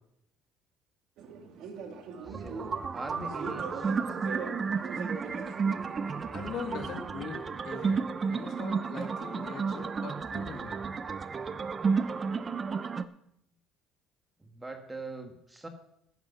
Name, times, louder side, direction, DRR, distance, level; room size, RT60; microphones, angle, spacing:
sound 1, 1.2-6.7, right 5 dB, 70° right, 1.8 m, -42 dB
voice 1, 2.3-3.9 14.4-15.7, right 2 dB, 15° right, 6 dB, 1.7 m, -42 dB
sound 2, 2.3-13.0, right 5 dB, 30° right, 0.7 m, -32 dB
voice 2, 6.3-10.7, left 6 dB, 60° left, 4 dB, 2.4 m, -41 dB
10.5 x 9.5 x 5.7 m, 0.78 s
cardioid pair, 105°, 0 cm